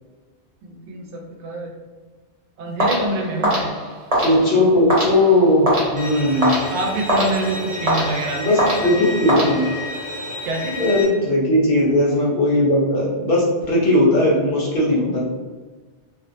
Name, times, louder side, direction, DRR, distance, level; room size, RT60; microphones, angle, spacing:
voice 1, 0.6-1.7 2.6-3.7 6.7-8.5 9.4-9.5 10.4-10.8, right 2 dB, 80° right, 0 dB, 0.9 m, -26 dB
sound 1, 2.8-10.0, right 1 dB, 35° right, 0.8 m, -24 dB
voice 2, 4.1-5.7 5.9-6.6 8.4-9.6 10.8-15.2, left 1 dB, 60° left, -4 dB, 0.8 m, -18 dB
Bowed string instrument, 6.0-11.0, left 2 dB, 10° right, 0.4 m, -31 dB
2.5 x 2.1 x 2.5 m, 1.3 s
omnidirectional pair, 1.2 m